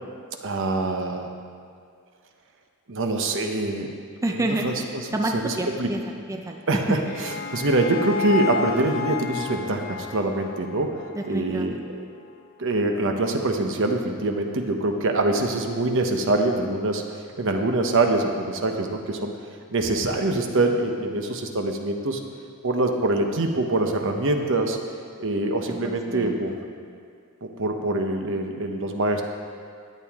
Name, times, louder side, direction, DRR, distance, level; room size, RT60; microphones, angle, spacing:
voice 1, 0.4-1.3 2.9-3.9 4.6-4.7 5.4-5.9 6.7-10.9 11.3-12.0 12.6-17.0 17.4-19.3 19.7-22.2 22.6-24.8 25.2-26.6 27.4-29.2, right 2 dB, 60° right, 4 dB, 0.9 m, -24 dB
voice 2, 4.2-6.0 6.3-6.6 11.1-11.8 25.7-26.6, right 1 dB, 15° right, 2 dB, 0.5 m, -29 dB
sound 1, 6.7-11.8, left 5 dB, 50° left, 0.9 m, -32 dB
13.5 x 9.1 x 3.6 m, 2.2 s
head